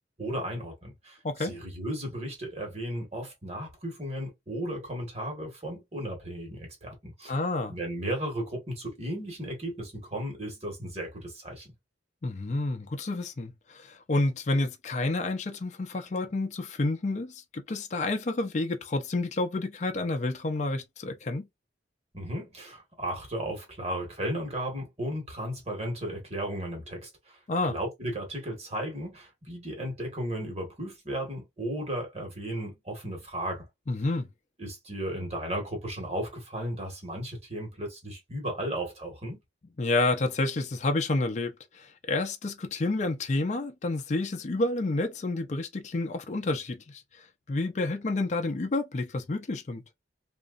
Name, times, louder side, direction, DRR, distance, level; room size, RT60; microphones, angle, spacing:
voice 1, 0.2-7.4 7.7-11.7 22.1-33.7 34.6-39.4, right 1 dB, 35° right, 1.3 m, -35 dB
voice 2, 1.2-1.6 7.3-7.8 12.2-21.4 27.5-27.8 33.9-34.3 39.8-49.8, left 2 dB, 40° left, 0.4 m, -29 dB
2.9 x 2.5 x 2.4 m
head